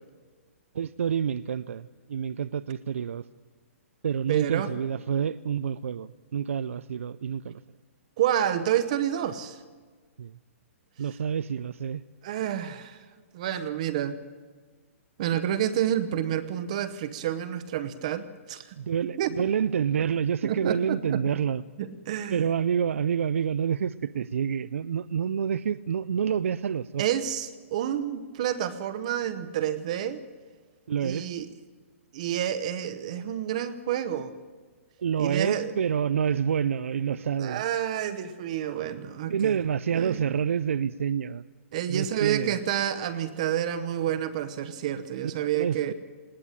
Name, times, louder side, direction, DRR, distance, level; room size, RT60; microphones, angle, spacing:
voice 1, 0.7-3.3 4.0-7.6 10.2-10.4 11.0-12.0 18.8-21.6 22.3-27.0 30.9-31.3 35.0-37.6 39.3-41.4 41.9-42.6 45.6-45.9, right 8 dB, 70° right, 15 dB, 0.5 m, -28 dB
voice 2, 4.3-4.7 8.2-9.6 12.2-13.0 13.3-14.2 15.2-18.8 19.2-19.3 20.4-21.2 21.8-22.5 27.0-30.2 31.0-31.5 32.1-34.3 35.2-35.7 37.4-39.6 39.9-40.2 41.7-45.9, right 10 dB, 30° right, 11 dB, 0.9 m, -29 dB
20.5 x 18.0 x 8.8 m, 1.5 s
hypercardioid pair, 180°, 8 cm